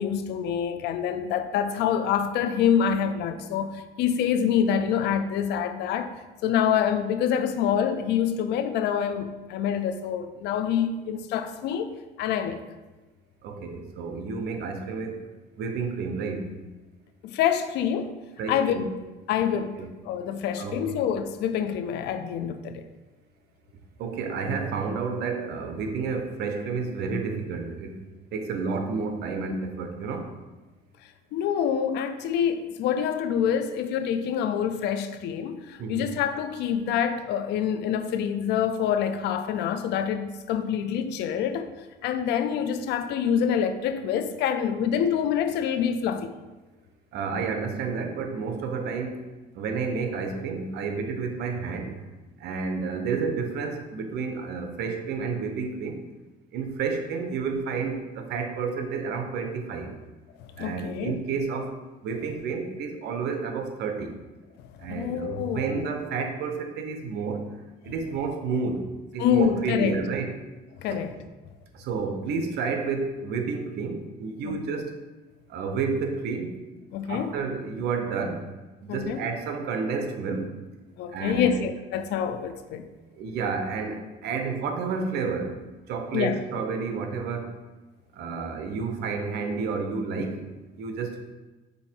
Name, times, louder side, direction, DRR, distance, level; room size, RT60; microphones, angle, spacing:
voice 1, 0.0-6.1 6.4-11.9 12.2-12.6 17.2-18.1 18.5-18.9 19.3-19.8 20.0-22.8 31.3-41.7 42.0-46.3 60.4-61.2 64.6-65.9 69.2-70.0 70.8-71.2 74.5-74.6 76.9-77.4 78.9-79.3 81.0-82.9 86.1-86.4, left 8 dB, 80° left, 10 dB, 0.5 m, -26 dB
voice 2, 13.4-15.2 15.6-16.5 18.4-18.9 19.8-19.9 20.6-21.0 24.0-28.0 28.3-30.3 35.8-36.1 47.1-49.3 49.5-51.9 52.4-56.0 56.5-59.9 60.6-61.7 62.0-64.1 64.8-67.4 67.8-68.8 69.1-70.3 70.9-71.0 71.7-74.9 75.5-76.5 77.0-78.4 78.8-80.5 81.1-81.5 83.2-85.6 85.9-87.5 88.1-90.4 90.8-91.2, right 5 dB, 75° right, 5 dB, 0.9 m, -30 dB
5.5 x 4.3 x 4.5 m, 1.2 s
cardioid pair, 110°, 17 cm